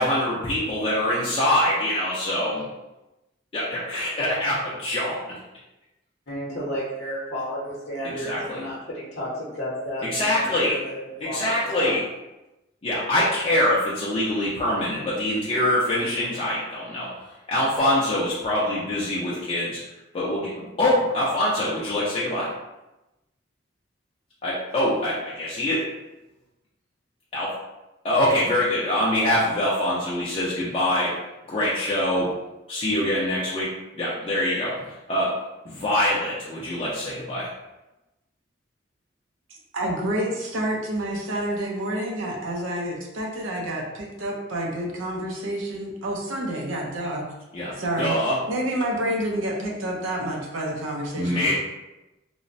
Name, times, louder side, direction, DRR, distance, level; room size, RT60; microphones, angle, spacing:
voice 1, 0.0-2.6 3.5-5.4 8.0-8.7 10.0-10.8 11.2-12.1 12.8-19.8 20.1-22.5 24.4-25.8 27.3-27.5 28.0-31.1 31.5-32.3 32.7-35.3 35.6-37.5 47.5-48.4 51.2-51.5, left 1 dB, 30° left, -8 dB, 0.4 m, -24 dB
voice 2, 6.3-11.9, equal, 65° left, -8 dB, 0.7 m, -32 dB
voice 3, 39.5-47.2 47.8-48.2 48.5-51.5, right 1 dB, 85° right, -1 dB, 0.6 m, -28 dB
3.0 x 2.0 x 2.5 m, 0.99 s
head